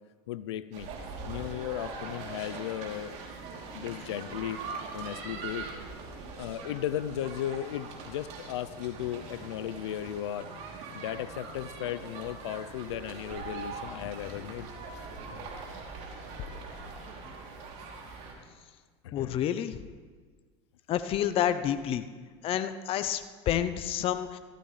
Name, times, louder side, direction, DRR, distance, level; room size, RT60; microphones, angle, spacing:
voice 1, 0.3-0.9 1.3-3.2 3.7-4.6 4.9-5.7 6.4-10.5 10.9-14.7 19.0-19.4, left 11 dB, 85° left, 15 dB, 0.6 m, -36 dB
sound 1, 0.7-18.3, right 4 dB, 55° right, 3.1 m, -42 dB
voice 2, 19.1-19.8 20.9-22.1 22.4-24.4, left 10 dB, 45° left, 11 dB, 0.7 m, -29 dB
16.5 x 14.5 x 3.3 m, 1.5 s
hypercardioid pair, 95°, 14 cm